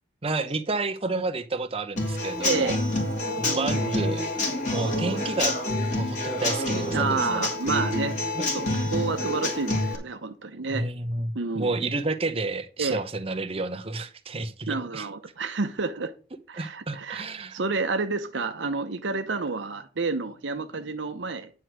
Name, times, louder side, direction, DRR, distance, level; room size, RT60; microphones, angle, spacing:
voice 1, 0.2-2.8 3.4-4.4 4.7-5.6 5.9-7.5 8.0-8.4 10.7-15.1 16.6-17.6, right 3 dB, 30° right, 0.8 m, -30 dB
Human voice / Acoustic guitar / Drum, 2.0-9.9, left 1 dB, 40° left, 2.6 m, -27 dB
voice 2, 2.4-2.8 3.4-3.9 6.9-8.2 8.5-10.9 11.3-11.7 12.8-13.0 14.7-16.1 16.5-21.5, right 4 dB, 85° right, 0.8 m, -29 dB
9.8 x 4.6 x 6.2 m
head